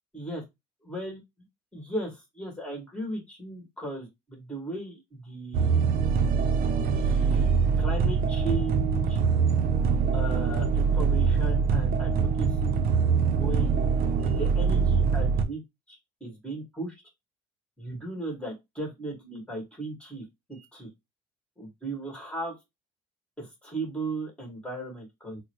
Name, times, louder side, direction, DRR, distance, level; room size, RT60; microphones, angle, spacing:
voice 1, 0.1-0.4 0.9-1.2 1.7-5.9 6.8-7.5 7.8-9.2 10.1-12.8 13.4-13.8 14.2-15.6 15.9-17.0 17.8-20.9 21.6-22.6 23.4-25.4, right 2 dB, 5° left, 0 dB, 2.0 m, -36 dB
sound 1, 5.5-15.4, right 6 dB, 60° right, 0.6 m, -24 dB
3.8 x 2.2 x 3.1 m, 0.20 s
cardioid pair, 110°, 17 cm